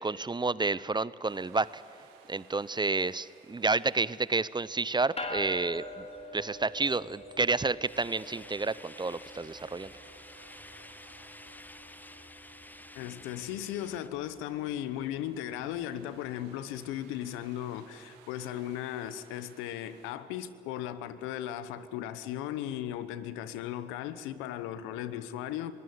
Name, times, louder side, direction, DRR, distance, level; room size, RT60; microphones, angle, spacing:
voice 1, 0.0-1.8 2.3-6.0 6.3-9.9, right 3 dB, 20° right, 0.7 m, -30 dB
sound 1, 1.3-20.1, right 8 dB, 85° right, 1.5 m, -61 dB
sound 2, 5.2-16.7, left 1 dB, 30° left, 2.9 m, -46 dB
sound 3, 7.9-14.1, left 1 dB, 10° left, 0.8 m, -51 dB
voice 2, 12.9-25.7, left 11 dB, 85° left, 0.9 m, -37 dB
21.0 x 17.0 x 9.5 m
hypercardioid pair, 40°, 20 cm